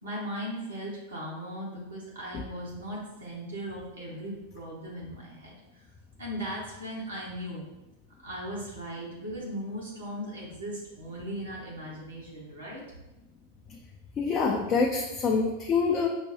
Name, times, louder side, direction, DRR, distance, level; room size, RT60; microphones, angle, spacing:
voice 1, 0.0-5.5 6.2-7.6 8.2-12.8, equal, 70° right, -5 dB, 1.4 m, -38 dB
voice 2, 14.2-16.1, left 5 dB, 30° left, 1 dB, 0.4 m, -26 dB
5.5 x 2.2 x 2.8 m, 0.99 s
figure-of-eight pair, 90°, 0 cm